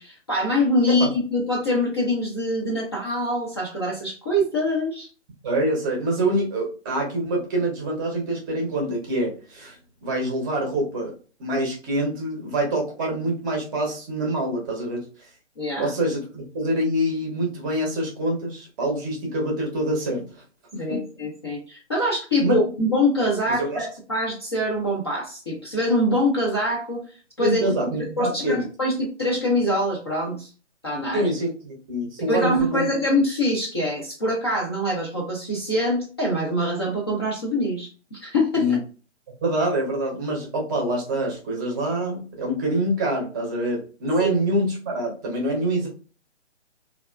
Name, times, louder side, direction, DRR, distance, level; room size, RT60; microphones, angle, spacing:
voice 1, 0.0-5.1 15.6-15.9 20.8-27.0 27.4-27.6 28.0-30.5 30.8-31.3 32.2-38.7 44.2-44.3, left 1 dB, 25° left, -3 dB, 0.4 m, -24 dB
voice 2, 5.4-9.8 10.0-11.1 11.4-15.0 15.8-20.3 20.7-21.0 22.4-22.6 23.5-23.9 27.4-28.6 31.1-32.9 38.6-38.8 39.4-45.9, right 1 dB, 20° right, -1 dB, 0.7 m, -25 dB
3.2 x 2.3 x 2.3 m, 0.36 s
figure-of-eight pair, 140°, 35 cm